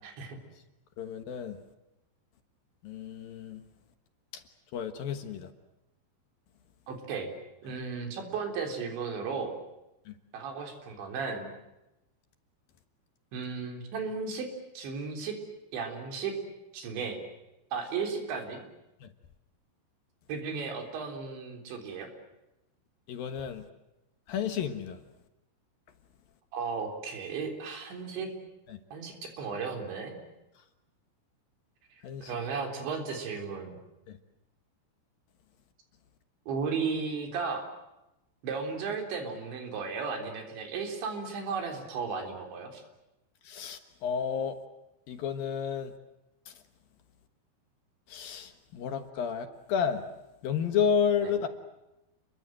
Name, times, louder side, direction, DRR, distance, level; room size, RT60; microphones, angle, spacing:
voice 1, 0.0-0.4 6.9-7.3 7.6-9.5 10.3-11.5 13.3-14.5 14.8-15.4 15.7-16.3 16.7-17.2 17.7-18.6 20.3-22.1 26.5-28.3 28.9-30.1 32.3-33.8 36.5-37.7 38.4-42.8 51.2-51.3, right 5 dB, 80° right, 4 dB, 6.0 m, -35 dB
voice 2, 1.0-1.6 2.8-3.6 4.3-4.4 4.7-5.5 10.1-10.2 19.0-19.1 23.1-23.7 24.3-25.0 28.7-28.8 32.0-32.3 34.1-34.2 43.4-44.6 45.1-45.9 48.1-50.1 50.4-51.5, left 7 dB, 65° left, 8 dB, 2.8 m, -31 dB
30.0 x 22.5 x 7.7 m, 0.94 s
omnidirectional pair, 5.1 m